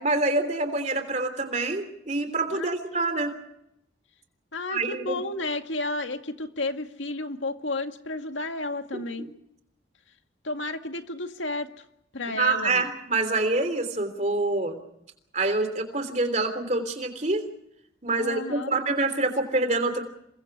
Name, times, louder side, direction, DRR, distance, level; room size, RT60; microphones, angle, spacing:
voice 1, 0.0-3.3 4.7-5.2 8.9-9.3 12.3-14.8 15.3-17.5 18.0-20.0, right 2 dB, 40° right, 8 dB, 3.3 m, -26 dB
voice 2, 2.5-3.1 4.5-9.3 10.4-11.8 12.1-12.9 18.2-18.8, left 2 dB, 85° left, 6 dB, 2.0 m, -32 dB
29.0 x 23.5 x 4.9 m, 0.79 s
head